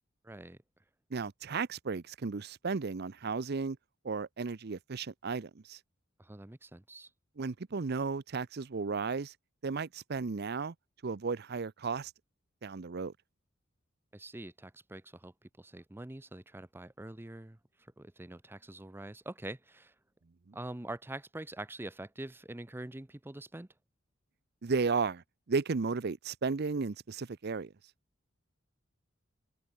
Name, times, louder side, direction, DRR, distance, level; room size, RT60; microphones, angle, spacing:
voice 1, 0.2-0.6 6.2-7.1 14.1-17.6 18.0-19.9 20.5-23.7, right 1 dB, 10° right, 0.6 m, -45 dB
voice 2, 1.1-3.8 4.0-5.8 7.4-9.3 9.6-10.7 11.0-12.1 12.6-13.1 24.6-25.2 25.5-27.7, right 4 dB, 55° right, 0.6 m, -34 dB
open air
head